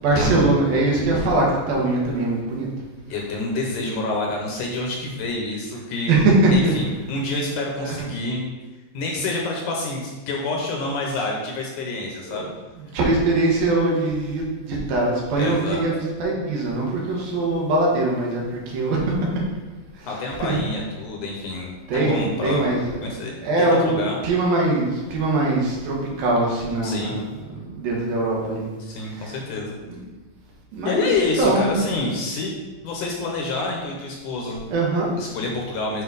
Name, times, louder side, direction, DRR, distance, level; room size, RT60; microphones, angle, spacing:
voice 1, 0.0-2.7 6.1-6.7 7.8-8.0 12.2-12.5 12.8-19.4 19.9-20.6 21.9-23.0 23.4-28.7 29.0-29.4 30.0-30.1 30.7-31.8 34.7-35.1, right 2 dB, 80° right, -2 dB, 3.2 m, -22 dB
voice 2, 3.1-6.2 6.5-8.5 8.9-12.5 15.4-15.8 20.1-21.7 22.0-22.7 23.0-24.2 26.8-27.1 28.8-29.8 30.8-32.5 32.8-34.7 35.2-36.0, left 3 dB, 70° left, -1 dB, 2.1 m, -27 dB
7.7 x 4.9 x 4.0 m, 1.2 s
omnidirectional pair, 4.2 m